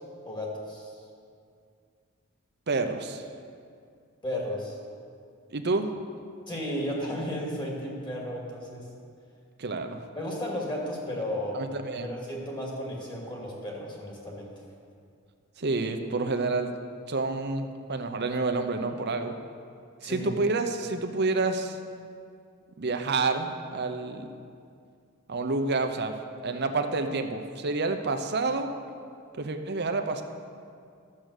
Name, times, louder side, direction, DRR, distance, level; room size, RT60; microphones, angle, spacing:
voice 1, 0.2-0.9 4.2-4.8 6.5-8.9 10.1-11.7 12.0-14.5 20.0-20.3, equal, 20° left, -3 dB, 2.4 m, -34 dB
voice 2, 2.7-3.2 5.5-5.9 9.6-10.0 11.5-12.1 15.6-16.7 17.1-19.3 20.0-21.8 22.8-24.3 25.3-26.1 26.4-28.7 29.4-30.2, right 3 dB, 50° right, 6 dB, 0.8 m, -28 dB
12.0 x 7.6 x 6.6 m, 2.3 s
head